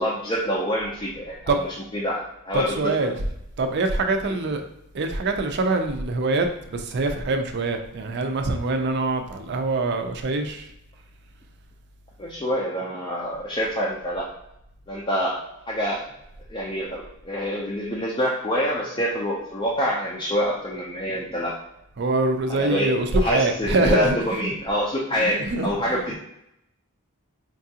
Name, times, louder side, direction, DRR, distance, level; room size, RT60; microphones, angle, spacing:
voice 1, 0.0-1.7 1.9-3.0 4.2-4.4 12.2-14.3 14.9-16.1 16.5-21.5 22.5-26.2, equal, 20° left, -5 dB, 0.5 m, -26 dB
voice 2, 2.5-3.1 3.6-4.6 4.9-10.7 22.0-24.5 25.2-25.7, right 2 dB, 50° right, 5 dB, 0.4 m, -24 dB
4.5 x 2.4 x 2.8 m, 0.81 s
head